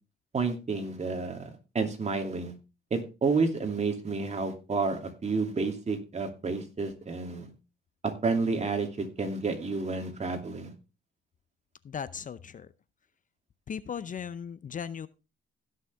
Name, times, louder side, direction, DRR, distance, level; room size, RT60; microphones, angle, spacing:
voice 1, 0.3-1.5 1.7-2.5 2.9-7.5 8.0-10.7, right 4 dB, 35° right, 2.7 m, -30 dB
voice 2, 11.8-12.7 13.7-15.1, left 7 dB, 40° left, 0.6 m, -37 dB
16.5 x 6.6 x 3.5 m
cardioid pair, 90°, 20 cm